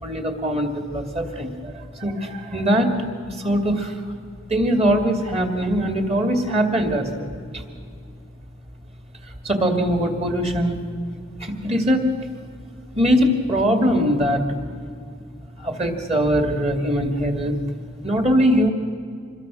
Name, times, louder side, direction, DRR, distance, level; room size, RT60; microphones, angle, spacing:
voice 1, 0.0-3.0 3.4-3.9 4.5-7.3 7.5-7.6 9.4-10.8 11.4-12.1 13.0-14.4 15.6-17.5 18.0-18.7, equal, 30° right, 4 dB, 2.4 m, -21 dB
26.0 x 21.0 x 6.3 m, 2.3 s
head